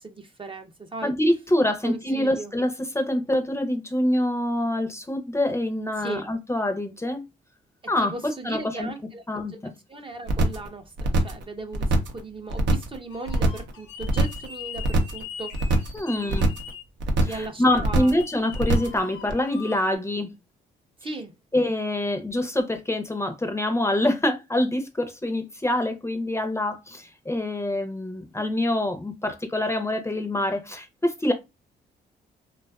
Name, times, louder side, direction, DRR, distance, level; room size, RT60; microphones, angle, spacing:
voice 1, 0.0-1.1 1.8-2.5 6.0-6.2 8.0-9.2 9.9-10.8 11.2-15.8 16.1-16.5 17.3-18.1 21.0-21.3, right 3 dB, 30° right, 0.6 m, -37 dB
voice 2, 1.0-7.2 7.9-8.9 9.3-9.7 15.9-16.5 17.2-20.3 21.5-31.3, left 1 dB, 15° left, 0.6 m, -25 dB
sound 1, 10.3-10.7 11.0-11.4 11.7-12.2 12.5-13.0 13.3-13.7 14.0-14.5 14.8-15.2 15.5-16.0 16.3-16.7 17.0-17.5 17.8-18.2 18.5-19.0 19.3-19.4, right 2 dB, 75° right, 0.6 m, -23 dB
sound 2, 13.1-16.8 18.0-20.0, left 7 dB, 80° left, 0.9 m, -41 dB
2.5 x 2.3 x 2.3 m
supercardioid pair, 60°, 19 cm